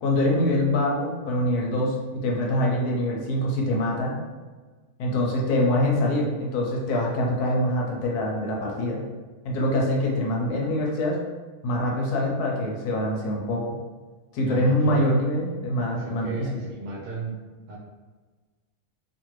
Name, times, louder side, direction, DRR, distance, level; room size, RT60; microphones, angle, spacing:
voice 1, 0.0-4.2 5.0-9.1 9.4-11.2 11.6-13.8 14.3-16.5, left 1 dB, 90° left, -1 dB, 1.2 m, -24 dB
voice 2, 14.5-15.1 15.9-17.4 17.7-17.8, right 4 dB, 60° right, -3 dB, 0.9 m, -35 dB
2.8 x 2.5 x 3.0 m, 1.3 s
omnidirectional pair, 1.6 m